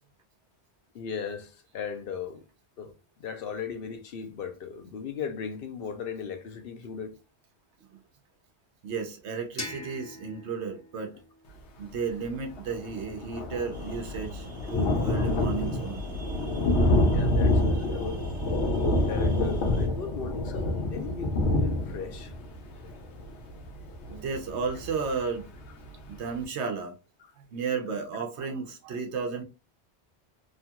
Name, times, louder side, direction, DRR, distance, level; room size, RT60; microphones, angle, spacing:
voice 1, 0.9-2.4 2.8-2.9 3.2-7.2 17.0-18.2 19.1-22.3, left 6 dB, 65° left, 0.8 m, -37 dB
voice 2, 8.8-11.1 11.8-16.2 24.1-25.5 26.1-26.9 27.4-29.4, right 5 dB, 90° right, 1.0 m, -33 dB
sound 1, 9.6-12.4, left 1 dB, 20° left, 0.5 m, -43 dB
Thunder, 12.2-12.3 12.6-25.2 25.7-25.8 26.1-26.2, left 1 dB, 85° left, 1.0 m, -27 dB
sound 2, 13.7-19.9, equal, 40° right, 0.8 m, -38 dB
3.0 x 2.3 x 2.7 m
omnidirectional pair, 1.1 m